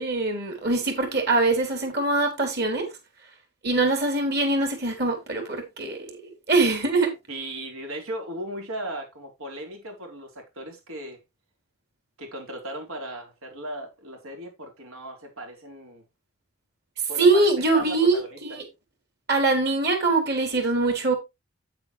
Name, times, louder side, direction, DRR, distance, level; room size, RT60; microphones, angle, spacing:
voice 1, 0.0-2.9 3.6-6.2 6.5-7.1 17.2-18.6 19.3-21.1, right 3 dB, 45° right, 3.6 m, -23 dB
voice 2, 7.3-11.2 12.2-16.0 17.1-17.3 17.7-18.6, right 1 dB, 75° right, 4.1 m, -37 dB
8.9 x 8.8 x 3.2 m
head